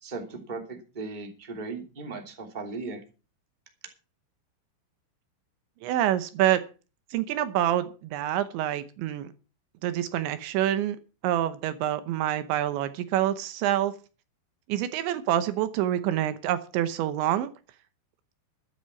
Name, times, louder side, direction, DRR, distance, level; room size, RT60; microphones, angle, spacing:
voice 1, 0.0-3.0, right 3 dB, 15° right, 3 dB, 1.8 m, -37 dB
voice 2, 5.8-6.6 7.1-9.3 9.8-11.0 11.2-14.0 14.7-17.5, right 12 dB, 75° right, 12 dB, 2.9 m, -26 dB
13.0 x 10.5 x 5.8 m, 0.34 s
omnidirectional pair, 6.0 m